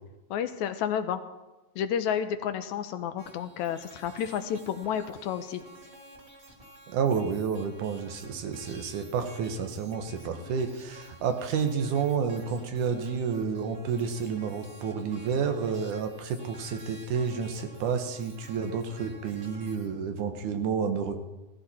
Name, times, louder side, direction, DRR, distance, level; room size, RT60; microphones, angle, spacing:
voice 1, 0.3-1.2 1.8-5.6, left 8 dB, 75° left, 9 dB, 2.1 m, -31 dB
sound 1, 3.2-19.9, right 1 dB, 20° right, 2.7 m, -51 dB
voice 2, 6.9-21.2, right 6 dB, 85° right, 6 dB, 2.7 m, -30 dB
16.5 x 14.5 x 4.3 m, 1.1 s
omnidirectional pair, 3.5 m